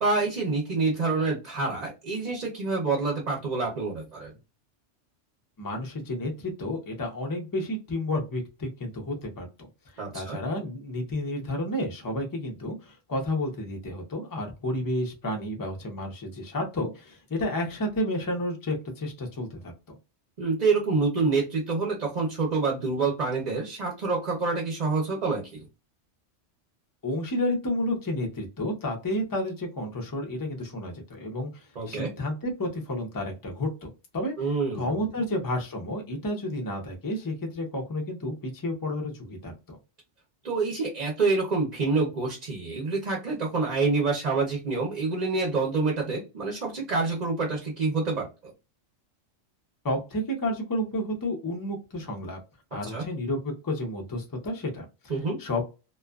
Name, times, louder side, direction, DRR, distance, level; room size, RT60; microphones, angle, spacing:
voice 1, 0.0-4.3 10.0-10.4 20.4-25.7 31.8-32.1 34.4-35.1 40.4-48.5 52.9-53.1 55.1-55.4, right 3 dB, 40° right, -1 dB, 0.7 m, -27 dB
voice 2, 5.6-9.5 10.1-20.0 27.0-34.3 34.7-39.8 49.8-52.4 52.7-55.6, left 1 dB, 20° left, 2 dB, 0.6 m, -31 dB
2.5 x 2.3 x 2.3 m, 0.28 s
omnidirectional pair, 1.2 m